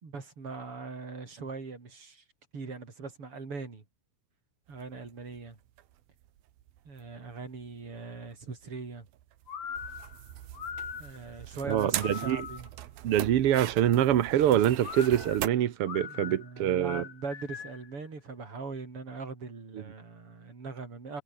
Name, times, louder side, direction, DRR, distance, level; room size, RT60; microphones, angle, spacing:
voice 1, 0.0-2.2 2.5-3.8 4.7-5.6 6.9-9.1 11.0-12.7 16.1-21.2, right 4 dB, 40° right, 5.3 m, -41 dB
sound 1, 4.7-15.5, right 13 dB, 85° right, 3.2 m, -41 dB
sound 2, 9.5-12.8 14.8-17.9, left 7 dB, 45° left, 1.9 m, -41 dB
voice 2, 11.6-12.5 13.0-17.0 19.7-19.8, right 11 dB, 65° right, 1.4 m, -25 dB
omnidirectional pair, 4.1 m